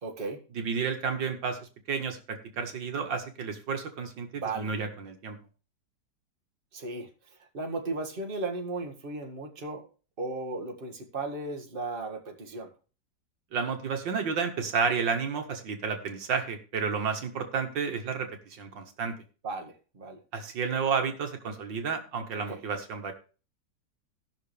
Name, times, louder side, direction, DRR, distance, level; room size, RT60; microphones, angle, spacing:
voice 1, 0.0-0.4 4.3-4.7 6.7-9.8 10.2-12.7 19.4-20.2 22.5-22.6, right 3 dB, 30° right, 3 dB, 1.7 m, -36 dB
voice 2, 0.6-1.6 1.9-5.4 13.5-19.2 20.3-23.1, right 5 dB, 75° right, 5 dB, 2.1 m, -31 dB
18.0 x 6.2 x 3.3 m, 0.35 s
omnidirectional pair, 2.0 m